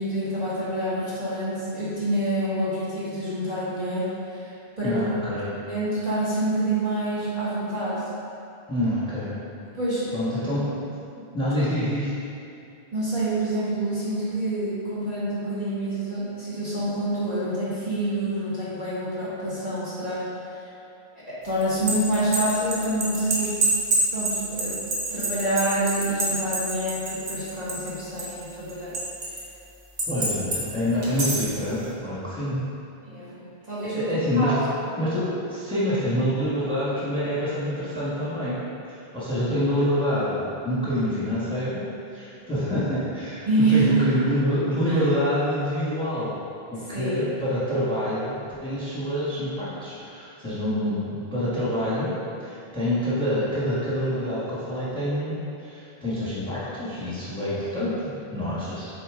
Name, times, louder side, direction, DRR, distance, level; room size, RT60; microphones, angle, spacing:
voice 1, 0.0-5.0 5.7-8.1 9.7-10.2 12.9-20.6 21.3-23.6 24.1-24.8 25.1-29.0 30.1-30.2 33.0-34.7 43.5-44.2 44.9-45.0 46.9-47.3, right 1 dB, 40° right, -11 dB, 1.7 m, -27 dB
voice 2, 4.8-5.5 8.7-9.3 10.1-10.7 11.3-12.1 30.1-32.6 33.8-34.5 35.0-38.6 39.1-41.9 42.1-46.4 46.7-48.4 48.6-52.1 52.4-55.3 55.6-58.9, equal, 5° left, -10 dB, 1.4 m, -26 dB
sound 1, 21.6-27.9 28.2-29.4 30.0-30.6 31.0-31.5, right 2 dB, 65° right, 1.3 m, -26 dB
7.0 x 4.2 x 3.7 m, 2.6 s
omnidirectional pair, 1.1 m